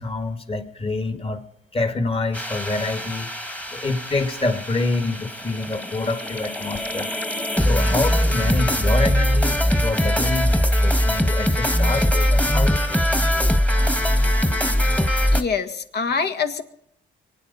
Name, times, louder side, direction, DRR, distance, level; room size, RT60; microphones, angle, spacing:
voice 1, 0.0-1.4 1.7-7.1 7.6-13.1, left 3 dB, 30° left, 8 dB, 2.2 m, -27 dB
sound 1, 2.3-15.4, equal, 5° left, 1.6 m, -21 dB
voice 2, 15.3-16.6, left 5 dB, 55° left, 7 dB, 1.8 m, -25 dB
24.0 x 9.6 x 5.5 m, 0.72 s
cardioid pair, 90°, 20 cm